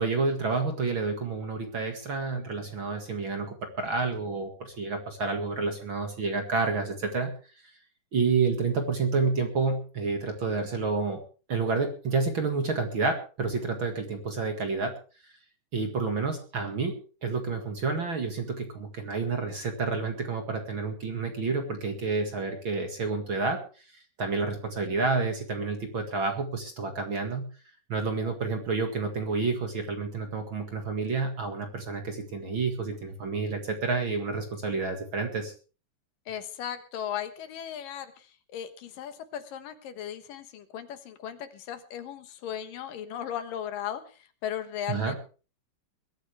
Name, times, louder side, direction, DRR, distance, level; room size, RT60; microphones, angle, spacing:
voice 1, 0.0-7.3 8.1-11.2 11.5-14.9 15.7-17.0 17.2-23.6 24.2-27.5 27.9-35.5 44.9-45.2, right 4 dB, 40° right, 4 dB, 2.3 m, -29 dB
voice 2, 36.3-45.2, left 9 dB, 75° left, 9 dB, 2.9 m, -37 dB
22.0 x 13.0 x 3.4 m, 0.36 s
omnidirectional pair, 4.0 m